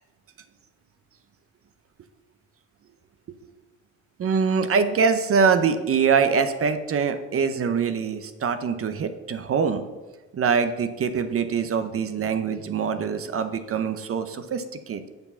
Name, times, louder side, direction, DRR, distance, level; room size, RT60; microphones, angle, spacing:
voice 1, 4.2-9.8 10.3-15.1, right 6 dB, 50° right, 10 dB, 0.7 m, -24 dB
7.9 x 4.6 x 6.8 m, 1.2 s
cardioid pair, 90°, 30 cm